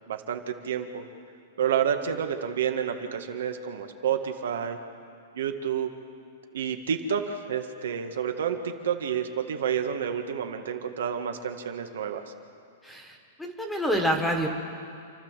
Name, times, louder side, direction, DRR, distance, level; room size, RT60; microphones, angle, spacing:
voice 1, 0.1-1.0 1.6-4.8 5.4-5.9 6.5-12.2, right 8 dB, 80° right, 5 dB, 1.8 m, -29 dB
voice 2, 12.8-14.5, equal, 5° left, 3 dB, 1.6 m, -27 dB
29.0 x 12.5 x 7.6 m, 2.3 s
supercardioid pair, 170°, 0 cm